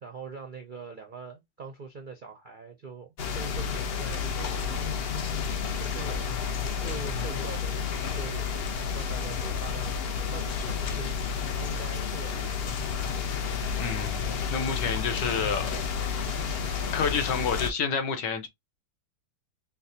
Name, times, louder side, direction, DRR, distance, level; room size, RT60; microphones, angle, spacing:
voice 1, 0.0-5.1 5.8-6.3 6.8-8.5 8.9-11.1 11.6-12.7, right 4 dB, 65° right, 0.5 m, -43 dB
sound 1, 3.2-17.7, left 6 dB, 70° left, 0.5 m, -31 dB
voice 2, 13.8-15.7 16.9-18.5, left 6 dB, 90° left, 1.6 m, -29 dB
4.6 x 2.2 x 2.7 m
omnidirectional pair, 1.8 m